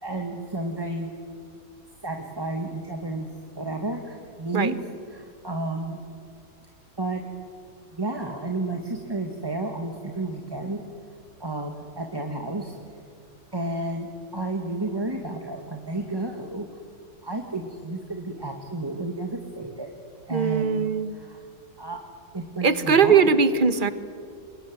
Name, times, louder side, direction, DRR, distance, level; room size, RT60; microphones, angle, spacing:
voice 1, 0.0-1.1 2.0-3.3 3.5-4.8 5.1-6.0 7.0-7.2 7.9-10.8 11.4-12.7 13.5-16.7 17.2-19.9 20.3-20.8 21.1-21.4 21.8-22.0 22.3-23.3, right 2 dB, 15° right, 3 dB, 1.7 m, -31 dB
voice 2, 20.3-21.1 22.6-23.9, right 5 dB, 35° right, 12 dB, 1.1 m, -20 dB
28.0 x 22.5 x 9.4 m, 2.3 s
omnidirectional pair, 1.8 m